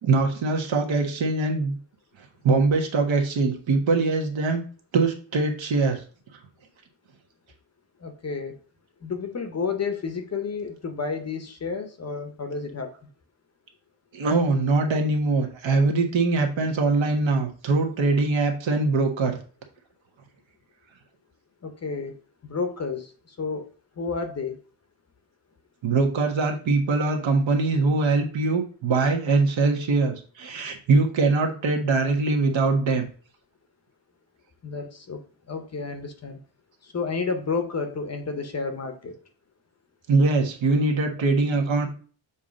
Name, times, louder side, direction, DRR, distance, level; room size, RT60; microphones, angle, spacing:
voice 1, 0.0-1.7 2.4-4.6 4.9-6.0 14.1-19.4 25.8-33.1 40.1-41.9, right 3 dB, 65° right, 4 dB, 1.5 m, -22 dB
voice 2, 8.0-8.6 9.0-12.9 21.6-22.2 22.4-23.7 24.0-24.6 34.6-35.2 35.5-36.4 36.8-39.1, left 4 dB, 30° left, 7 dB, 0.7 m, -31 dB
7.1 x 2.9 x 5.1 m, 0.40 s
wide cardioid pair, 160°, 49 cm